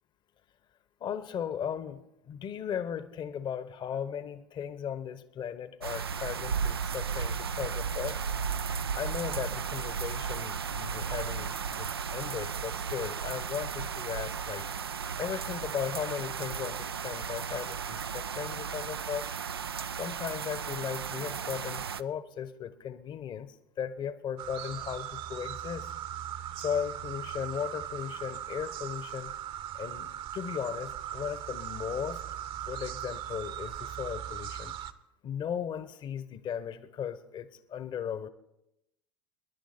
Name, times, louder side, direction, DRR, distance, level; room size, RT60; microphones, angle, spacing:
voice 1, 1.0-8.2 8.9-14.6 15.2-19.3 19.9-25.9 26.6-29.3 29.7-32.2 32.6-34.7 35.2-38.3, left 8 dB, 40° left, 13 dB, 1.1 m, -37 dB
sound 1, 5.8-22.0, right 6 dB, 90° right, 0.4 m, -35 dB
sound 2, 24.4-34.9, right 11 dB, 45° right, 0.9 m, -39 dB
25.0 x 11.0 x 4.4 m, 0.87 s
hypercardioid pair, 80°, 12 cm